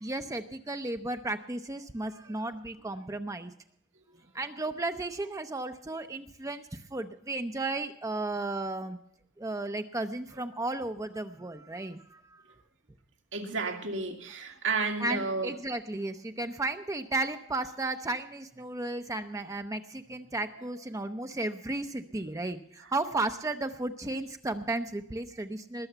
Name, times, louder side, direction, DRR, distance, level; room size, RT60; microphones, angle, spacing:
voice 1, 0.0-3.5 4.3-9.0 9.4-12.4 15.0-25.9, right 2 dB, 15° right, 7 dB, 0.6 m, -34 dB
voice 2, 13.3-15.5, right 4 dB, 80° right, 4 dB, 2.2 m, -32 dB
20.5 x 7.0 x 6.8 m, 0.69 s
head